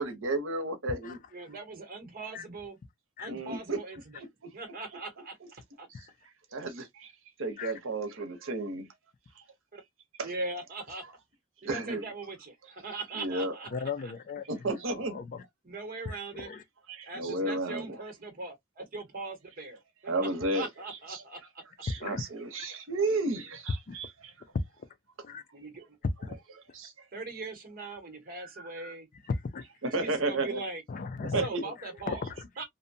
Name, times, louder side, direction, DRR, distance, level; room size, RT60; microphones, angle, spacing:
voice 1, 0.0-1.2 3.3-3.8 6.5-7.1 7.4-8.9 9.4-9.5 10.2-10.3 11.6-12.0 13.1-13.5 14.5-15.2 16.9-18.0 20.1-20.7 21.1-21.2 21.8-24.3 26.7-26.9 28.6-28.9 29.8-30.6 31.3-31.6, right 2 dB, 70° right, 0.8 m, -32 dB
voice 2, 1.3-2.8 3.2-4.2 4.5-5.4 5.8-5.9 9.7-9.8 10.2-11.0 11.6-13.7 14.0-14.1 15.6-16.5 17.1-20.1 20.5-21.4 25.5-25.9 27.1-29.1 29.9-30.8 31.4-32.3 32.6-32.7, right 3 dB, 45° right, 1.0 m, -40 dB
voice 3, 13.7-14.5 14.9-15.4 16.1-16.6 21.9-22.2 22.6-22.7 23.9-24.0 25.2-25.4 26.2-26.4 29.3-29.6 30.9-31.5 31.8-32.5, left 4 dB, 40° left, 0.4 m, -36 dB
2.6 x 2.1 x 2.6 m
head